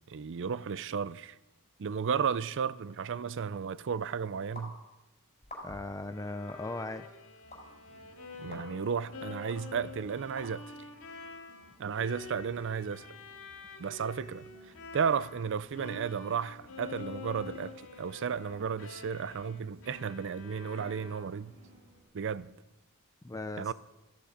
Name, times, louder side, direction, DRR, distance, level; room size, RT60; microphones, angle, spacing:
voice 1, 0.0-1.4 1.8-4.8 8.4-10.8 11.8-13.1 13.8-14.5 14.9-21.5 22.1-22.6 23.6-23.7, right 6 dB, 55° right, 0.5 m, -33 dB
sound 1, 4.6-4.7 5.4-5.9 6.5-6.6 7.5-7.6 8.5-8.6 9.5-9.6 10.4-10.5, left 1 dB, 30° left, 4.3 m, -45 dB
voice 2, 5.6-7.1 8.4-8.6 23.2-23.7, left 2 dB, 15° left, 0.5 m, -38 dB
Bowed string instrument, 6.1-15.5 15.7-21.6, left 4 dB, 70° left, 2.0 m, -47 dB
sound 2, 7.4-22.0, right 1 dB, 75° right, 4.7 m, -60 dB
17.0 x 14.0 x 5.0 m
head